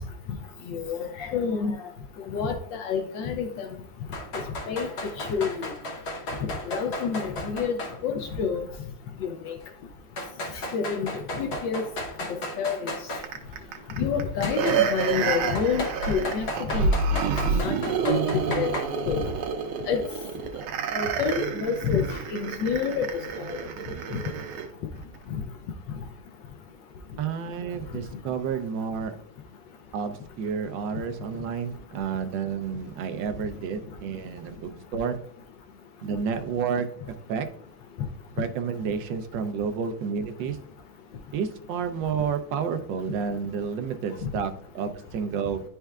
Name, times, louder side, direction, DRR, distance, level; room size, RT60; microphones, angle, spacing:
voice 1, 0.7-1.8 2.3-3.7 4.7-4.9 5.2-5.7 6.4-7.8 8.0-8.6 9.2-9.6 10.7-11.1 11.4-11.8 12.3-12.9 14.0-16.5 16.7-16.9 17.5-17.8 18.0-18.7 19.1-19.2 19.9-20.0 20.9-23.1 23.4-23.6, left 6 dB, 70° left, 5 dB, 1.2 m, -28 dB
sound 1, 4.1-8.0 8.3-8.4 9.2-9.3 10.2-13.3 14.4-14.8 15.5-18.8, left 1 dB, 45° left, 0.9 m, -34 dB
sound 2, 13.2-24.7 25.1-25.2, right 5 dB, 90° right, 1.5 m, -28 dB
voice 2, 27.2-29.2 29.9-35.2 36.0-37.5 38.4-40.6 41.3-45.6, right 6 dB, 70° right, 8 dB, 1.2 m, -30 dB
10.0 x 4.4 x 2.3 m, 0.62 s
omnidirectional pair, 2.2 m